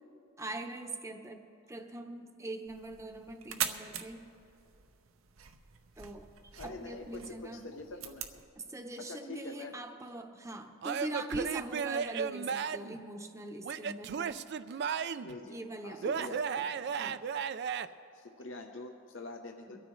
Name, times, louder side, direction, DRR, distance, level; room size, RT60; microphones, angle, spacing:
voice 1, 0.4-4.3 6.0-6.3 6.6-7.6 8.6-14.4 15.4-16.2 16.6-17.2 19.7-19.8, right 2 dB, 15° right, 5 dB, 0.8 m, -42 dB
sound 1, 2.7-8.4, right 9 dB, 85° right, 0.8 m, -43 dB
voice 2, 6.6-8.2 9.0-9.7 15.2-15.6 15.8-16.4 18.1-19.8, left 3 dB, 65° left, 3 dB, 0.8 m, -45 dB
Male speech man speaking / Yell / Laughter, 10.8-13.0 13.6-15.4 16.0-17.9, right 6 dB, 55° right, 0.4 m, -34 dB
23.0 x 13.5 x 3.2 m, 2.6 s
head